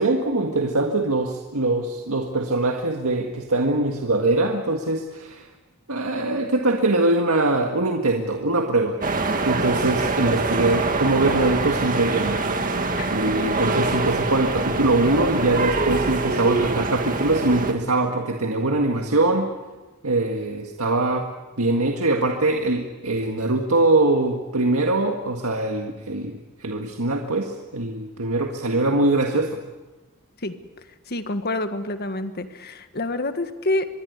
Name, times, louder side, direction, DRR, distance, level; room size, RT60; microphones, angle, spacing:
voice 1, 0.0-5.5 5.9-9.0 9.4-12.4 13.1-19.5 20.0-21.3 21.6-29.6, right 2 dB, 85° right, 3 dB, 1.8 m, -22 dB
sound 1, 9.0-17.7, right 3 dB, 40° right, 2.1 m, -24 dB
voice 2, 31.1-33.9, left 2 dB, 50° left, 8 dB, 1.7 m, -27 dB
25.5 x 22.0 x 8.2 m, 1.2 s
head